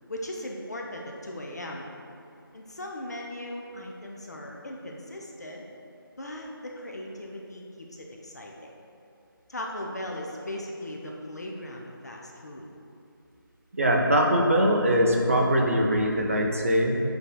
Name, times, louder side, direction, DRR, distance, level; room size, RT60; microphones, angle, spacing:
voice 1, 0.1-1.9 2.5-5.6 6.2-8.7 9.5-12.7, left 1 dB, 45° left, -1 dB, 0.4 m, -38 dB
voice 2, 13.7-17.0, equal, 40° right, 1 dB, 0.4 m, -22 dB
6.3 x 2.7 x 2.2 m, 2.7 s
figure-of-eight pair, 165°, 12 cm